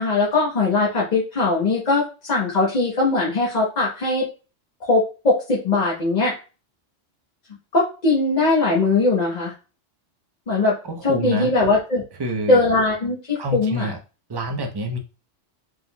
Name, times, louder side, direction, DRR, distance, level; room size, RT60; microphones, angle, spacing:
voice 1, 0.0-4.3 4.8-6.3 7.7-9.5 10.5-10.8 11.0-12.0 12.5-13.9, left 3 dB, 40° left, -5 dB, 1.0 m, -20 dB
voice 2, 10.8-11.5 12.2-12.6 13.4-14.0 14.3-15.0, right 1 dB, 30° right, 3 dB, 0.5 m, -27 dB
4.6 x 3.6 x 2.2 m, 0.32 s
omnidirectional pair, 1.3 m